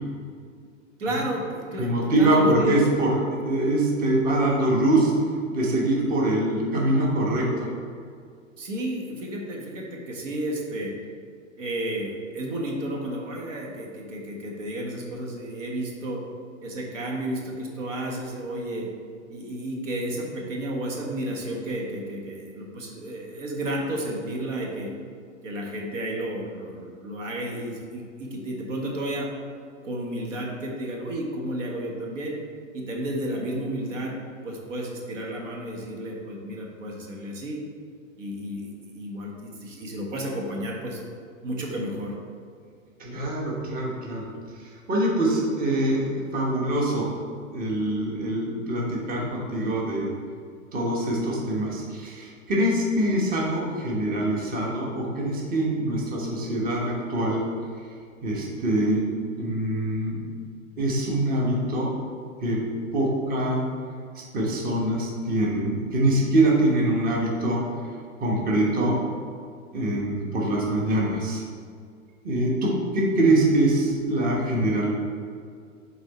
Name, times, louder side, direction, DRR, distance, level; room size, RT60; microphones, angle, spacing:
voice 1, 1.0-2.7 8.6-10.9 11.6-16.2 16.6-18.9 19.3-24.9 25.4-29.3 29.8-32.4 32.7-34.1 34.4-37.6 38.2-41.0 41.4-42.1, right 1 dB, 70° right, -1 dB, 1.4 m, -32 dB
voice 2, 1.8-5.1 5.5-7.7 43.0-44.2 44.9-47.1 47.5-50.1 50.7-57.4 58.2-59.1 59.4-60.2 60.8-61.9 62.4-62.6 62.9-63.6 64.1-67.6 68.2-69.0 69.7-71.4 72.2-74.9, right 1 dB, 20° right, -2 dB, 1.2 m, -24 dB
6.4 x 4.0 x 4.2 m, 2.2 s
hypercardioid pair, 115°, 39 cm